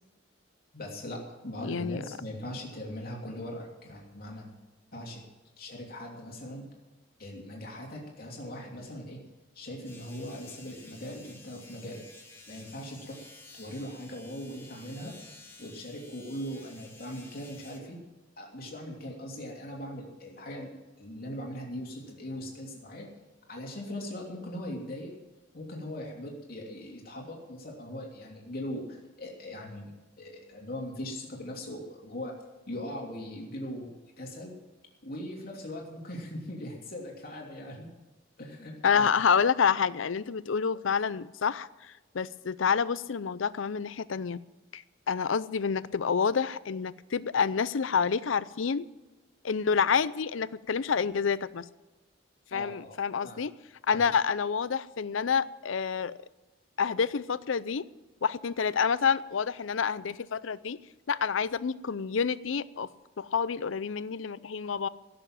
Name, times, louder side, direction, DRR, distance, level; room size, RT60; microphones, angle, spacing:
voice 1, 0.7-4.6 4.9-5.2 5.6-6.7 7.2-9.2 9.5-12.0 12.5-13.2 13.5-15.2 15.6-18.0 18.4-20.7 21.0-23.1 23.5-25.1 25.5-32.3 32.7-34.5 35.0-37.9 38.4-39.1 52.5-53.0 53.2-53.4 53.9-54.0, left 1 dB, 50° left, -1 dB, 3.1 m, -40 dB
voice 2, 1.6-2.0 38.8-41.7 42.1-44.4 44.7-48.9 49.4-51.7 52.5-53.5 53.9-56.2 56.8-57.9 58.2-60.8 61.1-62.9 63.2-64.9, left 6 dB, 85° left, 17 dB, 0.5 m, -28 dB
sound 1, 9.8-17.8, left 2 dB, 15° left, 2.2 m, -52 dB
17.0 x 7.0 x 9.0 m, 1.1 s
head